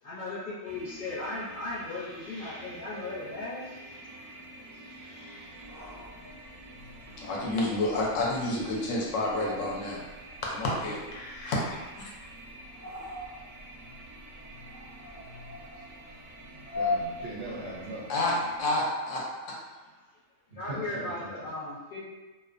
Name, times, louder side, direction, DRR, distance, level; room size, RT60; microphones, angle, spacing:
voice 1, 0.0-4.4 4.7-5.9 20.0-20.1 20.5-22.0, left 2 dB, 45° left, -9 dB, 0.7 m, -38 dB
sound 1, 0.6-18.6, right 1 dB, 90° right, 1.0 m, -48 dB
sound 2, 5.5-18.1, left 2 dB, 25° right, 0.4 m, -41 dB
voice 2, 7.2-10.0 10.4-12.1 18.1-19.6, left 2 dB, 75° left, -3 dB, 0.9 m, -30 dB
voice 3, 16.8-18.1 20.5-21.5, right 1 dB, 65° right, -7 dB, 0.6 m, -40 dB
2.4 x 2.1 x 2.4 m, 1.2 s
omnidirectional pair, 1.4 m